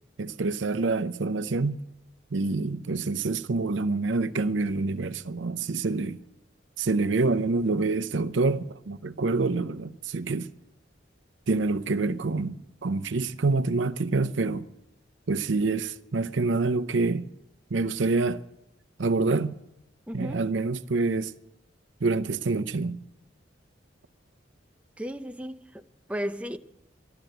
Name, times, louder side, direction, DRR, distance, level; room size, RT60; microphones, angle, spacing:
voice 1, 0.2-1.8 2.3-6.2 6.8-10.5 11.5-14.6 15.3-17.2 17.7-18.4 19.0-19.6 20.1-21.3 22.0-23.0, right 3 dB, 75° right, 0.7 m, -26 dB
voice 2, 20.1-20.4 25.0-25.8 26.1-26.6, equal, 5° right, 0.4 m, -34 dB
14.0 x 12.0 x 7.9 m
head